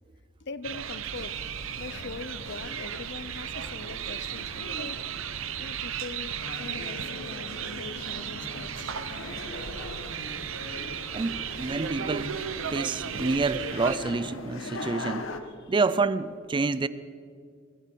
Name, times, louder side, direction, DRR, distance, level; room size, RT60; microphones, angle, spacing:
voice 1, 0.4-1.4 1.8-5.3 5.6-8.9 15.6-16.0, left 4 dB, 60° left, 0.6 m, -42 dB
sound 1, 0.6-14.0, right 8 dB, 85° right, 0.7 m, -35 dB
sound 2, 1.1-15.4, left 3 dB, 85° left, 1.2 m, -42 dB
Speech, 6.6-13.4, right 1 dB, 70° right, 4.0 m, -57 dB
voice 2, 9.6-9.9 11.1-12.4 12.7-15.3 15.7-16.9, right 3 dB, 25° right, 0.4 m, -28 dB
22.0 x 14.5 x 4.5 m
head